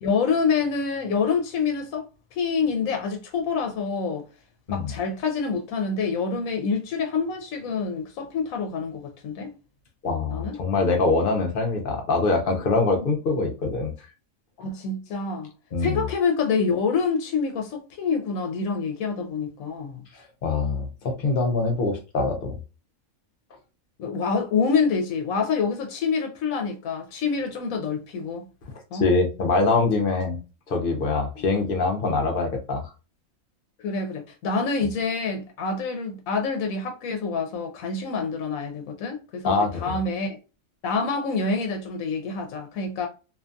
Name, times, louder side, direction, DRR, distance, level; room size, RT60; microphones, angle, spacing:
voice 1, 0.0-2.0 2.3-4.2 4.7-9.5 10.3-10.6 12.9-13.0 14.6-15.5 15.8-20.1 24.0-28.5 28.9-29.0 31.4-31.5 33.8-40.4 40.8-43.1, left 5 dB, 85° left, 1.0 m, -26 dB
voice 2, 10.0-13.9 15.7-16.0 20.1-22.6 28.9-30.4 30.7-32.9 39.4-40.0, left 3 dB, 55° left, 0.6 m, -24 dB
2.6 x 2.2 x 2.5 m
omnidirectional pair, 1.4 m